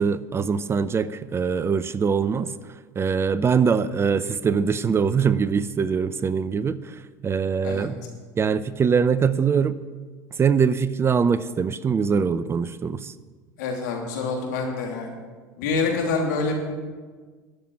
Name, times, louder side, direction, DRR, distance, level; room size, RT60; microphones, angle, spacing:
voice 1, 0.0-2.5 3.0-6.9 7.2-8.0 8.4-9.7 10.4-13.1, right 6 dB, 25° right, 15 dB, 0.6 m, -22 dB
voice 2, 13.6-15.1 15.6-16.6, left 4 dB, 75° left, 0 dB, 3.2 m, -26 dB
11.5 x 7.6 x 9.6 m, 1.5 s
hypercardioid pair, 85°, 10 cm